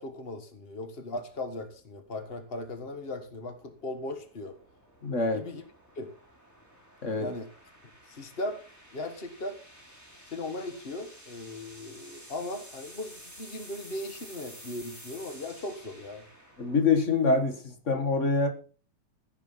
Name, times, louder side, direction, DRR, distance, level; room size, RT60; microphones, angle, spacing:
voice 1, 0.0-4.5 5.3-5.6 5.9-6.1 7.2-7.5 8.1-8.6 8.9-9.6 10.3-16.2, left 2 dB, 60° left, 8 dB, 0.6 m, -38 dB
sound 1, 1.3-17.4, equal, 5° left, 3.8 m, -52 dB
voice 2, 5.0-5.4 7.0-7.3 16.6-18.5, left 4 dB, 35° left, 7 dB, 1.3 m, -25 dB
16.0 x 8.2 x 5.7 m, 0.38 s
omnidirectional pair, 3.7 m